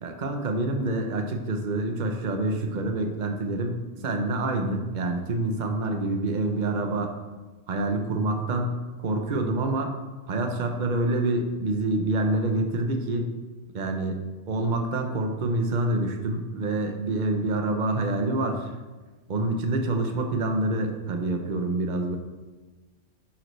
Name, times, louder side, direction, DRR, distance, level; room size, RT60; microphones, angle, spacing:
voice 1, 0.0-7.1 7.7-9.9 10.3-13.3 13.7-18.8 19.3-22.2, right 2 dB, 40° right, 4 dB, 1.0 m, -27 dB
11.0 x 7.1 x 3.3 m, 1.3 s
omnidirectional pair, 1.4 m